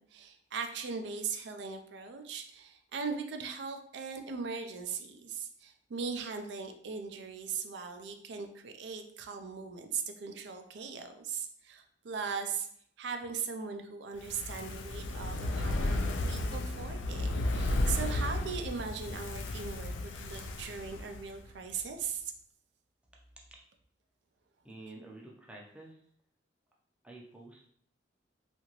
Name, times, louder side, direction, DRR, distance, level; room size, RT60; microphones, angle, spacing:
voice 1, 0.0-12.7 13.0-22.3, right 5 dB, 65° right, 6 dB, 0.4 m, -39 dB
Fire, 14.2-21.5 21.8-21.9, left 1 dB, 80° left, 0.3 m, -33 dB
voice 2, 24.6-26.0 27.0-27.7, right 2 dB, 5° right, -2 dB, 0.4 m, -49 dB
2.8 x 2.5 x 2.9 m, 0.65 s
head